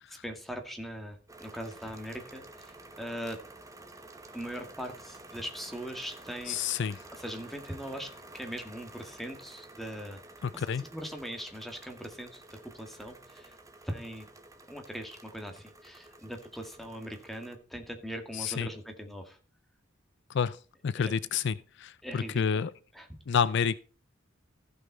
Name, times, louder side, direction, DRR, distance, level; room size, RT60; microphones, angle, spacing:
voice 1, 0.2-3.4 4.3-6.6 7.1-10.2 10.5-10.7 10.9-13.6 13.8-14.3 14.7-19.4 20.9-21.1 22.0-22.7 22.9-23.1, equal, ahead, 1.9 m, -40 dB
sound 1, 1.3-17.6, right 2 dB, 15° right, 1.1 m, -51 dB
voice 2, 6.5-7.0 10.4-10.8 18.4-18.7 20.3-20.6 20.8-22.7 23.3-23.8, left 6 dB, 65° left, 0.4 m, -29 dB
15.5 x 5.5 x 4.1 m
head